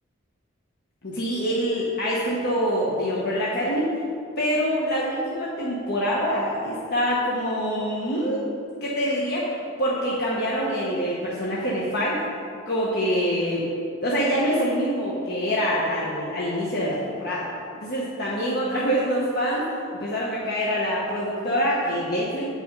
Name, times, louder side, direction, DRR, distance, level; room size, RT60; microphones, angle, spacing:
voice 1, 1.0-3.9 4.4-8.5 8.8-9.5 9.8-12.2 12.7-13.6 14.0-17.4 17.8-19.6 19.9-22.5, equal, 50° left, -6 dB, 1.1 m, -25 dB
8.1 x 5.1 x 5.2 m, 2.4 s
head